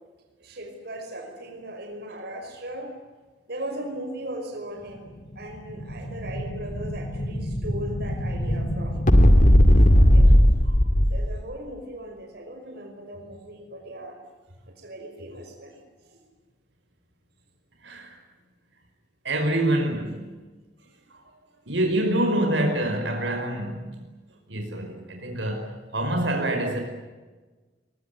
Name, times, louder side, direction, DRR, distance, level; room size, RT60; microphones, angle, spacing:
voice 1, 0.4-2.9 3.5-9.1 9.9-10.4 11.1-14.2 14.6-15.8 16.1-16.2, right 1 dB, 60° right, 5.4 m, -38 dB
Explosion, 5.3-11.4, equal, 45° left, 2.2 m, -19 dB
voice 2, 17.8-18.2 19.2-20.3 21.1-21.2 21.7-24.0 24.5-26.8, right 1 dB, 75° right, 5.3 m, -26 dB
22.5 x 22.5 x 9.6 m
head